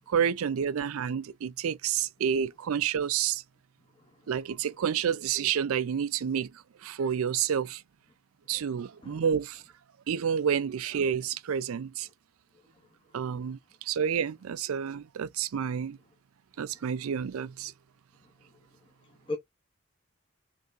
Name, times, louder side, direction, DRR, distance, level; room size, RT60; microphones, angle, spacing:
voice 1, 0.1-3.4 4.3-6.5 6.8-7.8 8.5-9.6 10.1-12.1 13.1-16.0 16.6-17.7, right 8 dB, 80° right, 0.4 m, -29 dB
voice 2, 4.0-4.1 9.0-9.2 19.1-19.4, left 3 dB, 25° left, 0.9 m, -37 dB
3.6 x 3.4 x 3.9 m
head